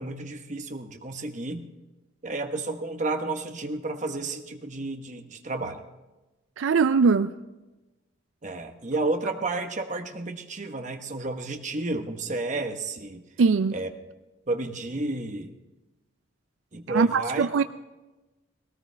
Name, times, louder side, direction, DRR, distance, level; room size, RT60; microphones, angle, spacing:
voice 1, 0.0-1.7 2.2-5.8 8.4-13.2 13.7-13.9 14.5-15.5 16.7-17.5, right 2 dB, 40° right, 1.1 m, -31 dB
voice 2, 6.6-7.4 13.4-13.8 16.9-17.6, right 5 dB, 75° right, 0.4 m, -21 dB
19.5 x 18.0 x 3.4 m
head